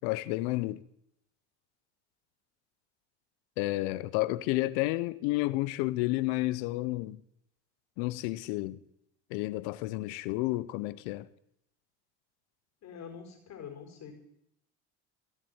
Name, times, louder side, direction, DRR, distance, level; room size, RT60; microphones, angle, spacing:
voice 1, 0.0-0.8 3.6-7.2 8.0-8.8 9.3-11.3, left 19 dB, 70° left, 0.8 m, -31 dB
voice 2, 12.8-14.1, left 7 dB, 50° left, 4.5 m, -45 dB
17.5 x 7.5 x 9.4 m
supercardioid pair, 95°, 35 cm